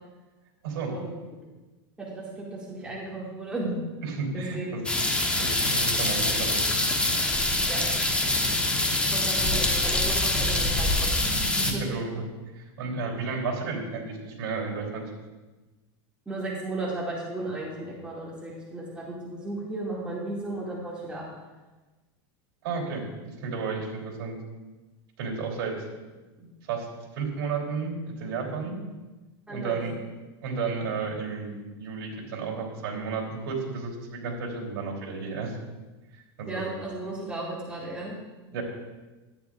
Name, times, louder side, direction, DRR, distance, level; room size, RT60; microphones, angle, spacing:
voice 1, 2.0-3.8 4.3-4.7 7.7-7.8 8.4-8.5 8.9-11.8 16.3-21.2 29.5-29.8 36.5-38.1, right 2 dB, 10° right, -6 dB, 2.2 m, -35 dB
voice 2, 4.0-4.8 5.4-6.8 8.8-8.9 11.6-12.2 12.5-15.0 22.6-24.4 25.2-25.9 26.7-26.9 27.1-28.8 29.5-29.9 30.4-35.5 36.1-36.6 38.5-38.6, right 4 dB, 70° right, -1 dB, 3.2 m, -32 dB
sound 1, 4.9-11.7, left 2 dB, 10° left, 1.1 m, -25 dB
12.5 x 9.5 x 2.5 m, 1.2 s
supercardioid pair, 120°, 13 cm